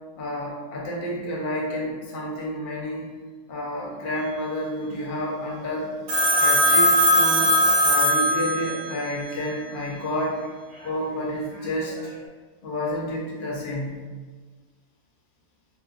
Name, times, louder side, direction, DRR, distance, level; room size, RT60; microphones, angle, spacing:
voice 1, 0.2-3.1 3.5-5.9 6.4-7.5 7.8-10.4 10.8-11.9 12.6-14.0, equal, 60° left, -4 dB, 0.5 m, -30 dB
Telephone, 6.1-8.9, equal, 70° right, 1.1 m, -19 dB
2.8 x 2.3 x 2.4 m, 1.4 s
omnidirectional pair, 1.7 m